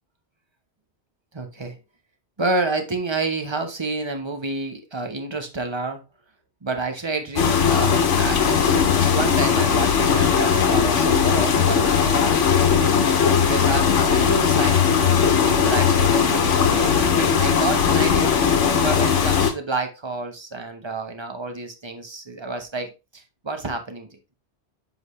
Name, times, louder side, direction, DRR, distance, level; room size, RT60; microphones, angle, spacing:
voice 1, 1.3-1.8 2.4-6.0 6.6-24.4, right 2 dB, 25° right, 6 dB, 1.1 m, -29 dB
sound 1, 7.4-19.5, left 7 dB, 85° left, 1.3 m, -19 dB
7.5 x 5.0 x 3.2 m, 0.26 s
omnidirectional pair, 1.2 m